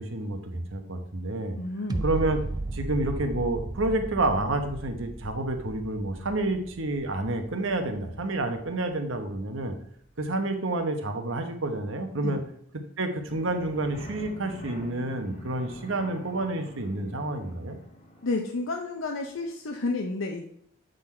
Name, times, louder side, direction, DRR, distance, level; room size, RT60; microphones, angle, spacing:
voice 1, 0.0-1.6 2.0-2.4 2.7-9.8 10.2-12.4 13.0-17.8, right 2 dB, 70° right, 6 dB, 1.0 m, -29 dB
voice 2, 1.6-2.1 12.2-12.5 18.2-20.4, left 3 dB, 70° left, 3 dB, 0.6 m, -31 dB
sound 1, 1.9-8.9 9.4-9.5, right 2 dB, 20° right, 0.3 m, -36 dB
sound 2, 13.3-18.3, equal, 30° left, 1.5 m, -45 dB
7.9 x 3.9 x 4.4 m, 0.66 s
head